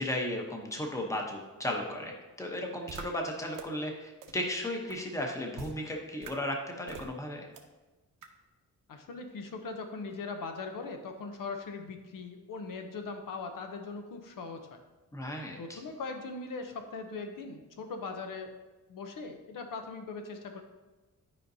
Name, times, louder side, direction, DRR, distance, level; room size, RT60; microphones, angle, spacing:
voice 1, 0.0-2.1 2.4-7.5 15.1-15.8, left 1 dB, 10° left, 1 dB, 0.8 m, -35 dB
sound 1, 2.9-3.0 3.5-3.6 4.2-4.3 4.9-5.0 5.6-5.7 6.2-6.3 6.9-7.1 7.6-7.7 8.2-8.3, right 6 dB, 75° right, 0.8 m, -43 dB
voice 2, 8.9-14.8 15.6-18.5 18.9-20.6, left 4 dB, 85° left, 5 dB, 0.8 m, -40 dB
10.5 x 5.1 x 2.7 m, 1.2 s
wide cardioid pair, 170°, 32 cm